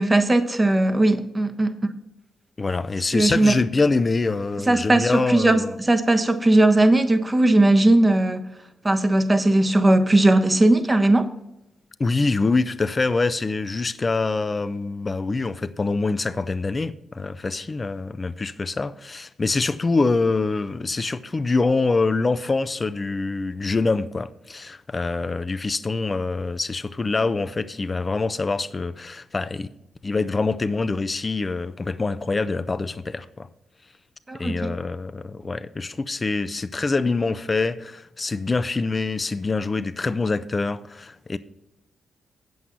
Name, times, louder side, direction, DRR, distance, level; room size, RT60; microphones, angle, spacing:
voice 1, 0.0-1.7 3.1-3.5 4.7-8.5 8.8-11.3 34.3-34.7, right 2 dB, 25° right, 1.2 m, -18 dB
voice 2, 2.6-5.8 12.0-29.7 30.0-33.5 34.4-41.4, left 3 dB, 35° left, 0.6 m, -25 dB
8.3 x 7.9 x 5.5 m
hypercardioid pair, 40°, 0 cm